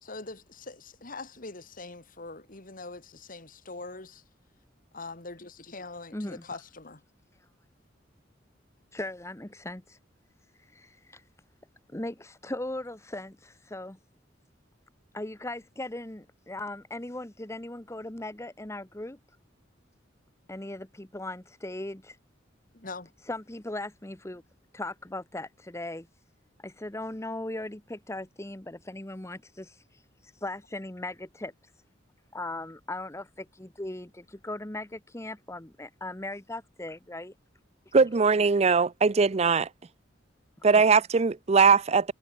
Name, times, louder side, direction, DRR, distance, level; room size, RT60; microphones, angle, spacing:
voice 1, 0.0-4.2 4.9-7.0 22.7-23.1, left 3 dB, 50° left, 2.7 m, -42 dB
voice 2, 6.1-6.4 8.9-10.0 10.7-11.2 11.9-14.0 15.1-19.2 20.5-22.2 23.3-24.4 24.7-26.1 26.6-31.5 32.3-37.3, left 2 dB, 15° left, 1.1 m, -38 dB
voice 3, 37.9-39.7 40.6-42.1, right 5 dB, 35° right, 0.5 m, -21 dB
head